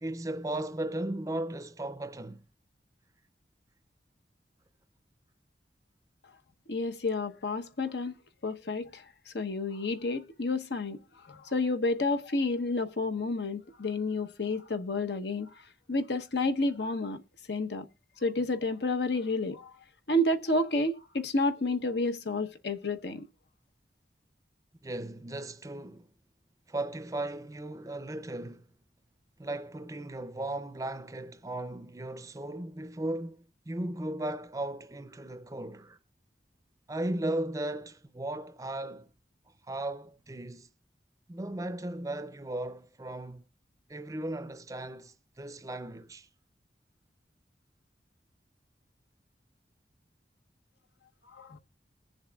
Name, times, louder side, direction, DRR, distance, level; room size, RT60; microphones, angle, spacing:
voice 1, 0.0-2.4 24.8-26.1 26.7-28.7 29.4-36.0 36.9-39.1 39.7-40.7 41.3-43.5 43.9-46.3, right 1 dB, 20° right, 0.5 m, -36 dB
voice 2, 6.7-8.1 8.4-17.2 17.5-17.9 18.2-23.3 51.3-51.6, left 2 dB, 75° left, 1.0 m, -30 dB
21.0 x 7.2 x 2.3 m
head